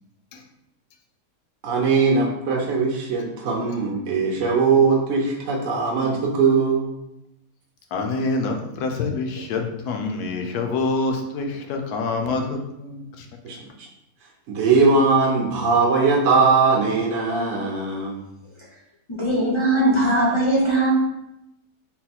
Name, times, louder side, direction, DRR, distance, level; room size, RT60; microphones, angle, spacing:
voice 1, 1.6-6.9 13.4-13.9 14.5-18.2, right 4 dB, 60° right, -1 dB, 0.9 m, -20 dB
voice 2, 7.9-13.3, left 3 dB, 75° left, 3 dB, 1.1 m, -26 dB
voice 3, 19.1-20.9, right 1 dB, 35° left, -6 dB, 0.5 m, -20 dB
4.0 x 2.2 x 4.1 m, 0.87 s
omnidirectional pair, 1.7 m